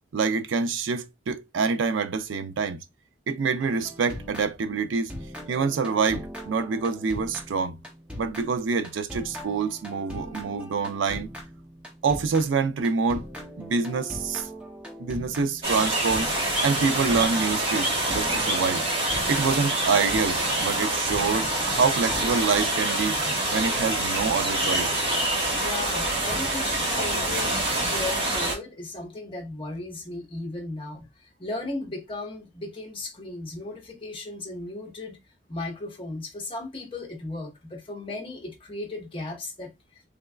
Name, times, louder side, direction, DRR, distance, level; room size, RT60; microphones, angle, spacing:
voice 1, 0.1-2.8 3.3-5.1 5.5-7.8 8.2-11.3 12.0-13.2 13.6-14.5 15.0-16.3 16.6-18.8 19.3-23.2 23.5-25.0, right 5 dB, 90° right, 0.4 m, -26 dB
sound 1, 3.6-4.8 5.1-22.9, equal, 5° right, 0.7 m, -40 dB
sound 2, 15.6-28.5, right 1 dB, 30° right, 1.1 m, -26 dB
voice 2, 25.6-35.2 35.5-40.0, left 2 dB, 30° left, 0.9 m, -36 dB
3.4 x 3.0 x 2.3 m
head